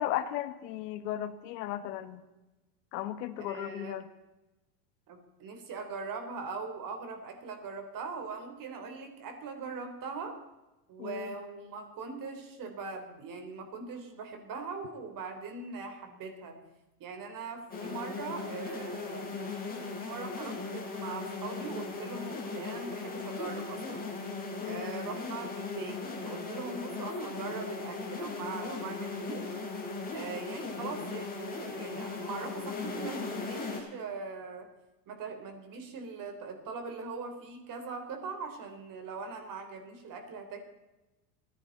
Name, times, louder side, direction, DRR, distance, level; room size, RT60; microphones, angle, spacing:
voice 1, 0.0-2.2 2.9-4.0 11.0-11.3 24.6-24.9, left 12 dB, 75° left, 11 dB, 1.5 m, -35 dB
voice 2, 3.4-4.0 5.1-10.4 10.9-16.6 17.0-19.4 20.0-24.0 24.6-29.6 30.1-34.7 35.1-40.6, right 4 dB, 40° right, 6 dB, 3.7 m, -41 dB
sound 1, 17.7-33.8, left 3 dB, 20° left, 4.5 m, -38 dB
25.0 x 10.5 x 4.1 m, 1.0 s
supercardioid pair, 110°, 49 cm